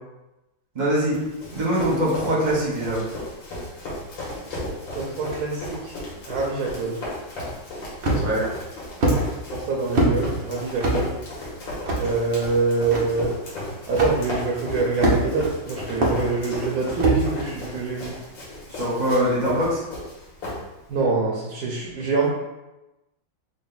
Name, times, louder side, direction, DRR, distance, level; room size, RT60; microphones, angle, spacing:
voice 1, 0.7-1.2 1.5-3.0 8.2-8.4 18.7-19.8, equal, 35° right, -6 dB, 0.7 m, -22 dB
Run, 1.1-21.0, left 1 dB, 75° left, 1.9 m, -35 dB
voice 2, 4.9-5.9 6.3-7.0 8.1-8.3 9.5-11.2 12.0-13.3 13.9-18.2 20.9-22.3, right 4 dB, 70° right, -2 dB, 0.9 m, -25 dB
sound 1, 8.0-8.4 9.0-9.2 9.9-10.1 10.8-11.0 11.9-12.0 12.9-13.0 14.0-14.1 15.0-15.4 16.0-16.2 17.0-17.2, right 2 dB, 90° right, 0.5 m, -20 dB
3.9 x 2.2 x 3.8 m, 1.0 s
omnidirectional pair, 2.2 m